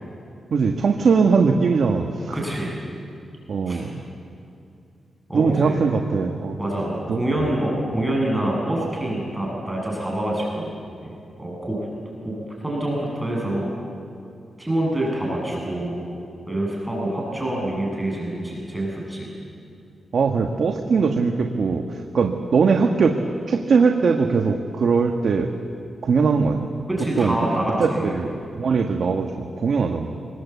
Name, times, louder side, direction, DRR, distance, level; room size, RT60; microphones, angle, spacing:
voice 1, 0.5-2.4 3.5-4.0 5.3-6.6 7.1-7.5 20.1-23.2 23.5-25.5 26.0-26.7 27.2-27.3 27.8-30.2, right 5 dB, 70° right, 4 dB, 1.4 m, -21 dB
voice 2, 2.3-2.7 3.7-3.8 5.3-5.8 6.6-10.7 11.0-11.8 12.2-12.3 12.6-13.7 14.6-15.9 16.5-19.3 26.9-28.1, right 1 dB, 10° right, -3 dB, 7.8 m, -26 dB
26.0 x 21.0 x 8.3 m, 2.5 s
cardioid pair, 75°, 0 cm